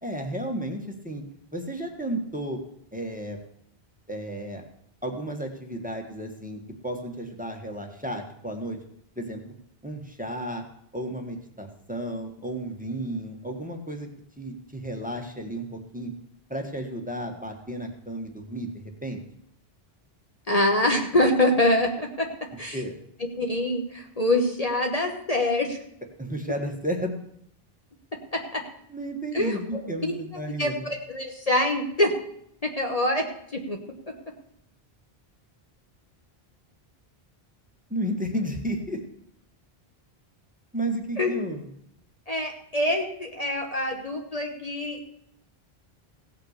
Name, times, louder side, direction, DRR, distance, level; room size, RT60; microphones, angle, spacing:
voice 1, 0.0-1.2 1.5-2.6 2.9-3.4 4.1-4.6 5.0-8.8 9.1-9.4 9.8-10.6 10.9-14.1 14.4-16.1 16.5-19.2 22.7-22.9 26.2-27.1 28.9-30.9 37.9-39.0 40.7-41.7, right 1 dB, 10° right, 3 dB, 1.6 m, -33 dB
voice 2, 20.5-22.3 22.6-22.8 23.4-25.8 28.3-28.6 29.3-30.2 30.6-32.1 32.6-33.3 33.5-33.8 34.1-34.2 41.2-41.3 42.3-45.1, left 1 dB, 40° left, 2 dB, 1.3 m, -25 dB
16.5 x 5.9 x 6.6 m, 0.72 s
omnidirectional pair, 1.0 m